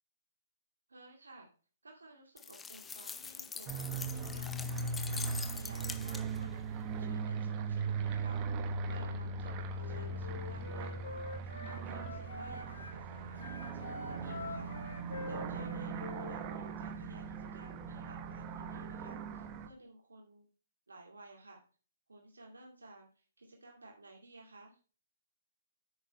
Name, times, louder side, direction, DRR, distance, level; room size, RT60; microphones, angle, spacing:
voice 1, 0.9-1.5 1.8-8.4 8.9-11.1 11.5-14.7 15.2-20.5 20.9-21.6 22.1-24.8, right 2 dB, 80° right, 0 dB, 2.3 m, -55 dB
sound 1, 2.4-6.5, left 6 dB, 10° left, 0.5 m, -44 dB
sound 2, 3.7-19.7, right 4 dB, 30° right, 1.2 m, -39 dB
Wind instrument woodwind instrument, 9.7-13.0 13.3-16.7, left 2 dB, 80° left, 4.1 m, -46 dB
8.1 x 8.0 x 3.1 m, 0.37 s
figure-of-eight pair, 130°, 0 cm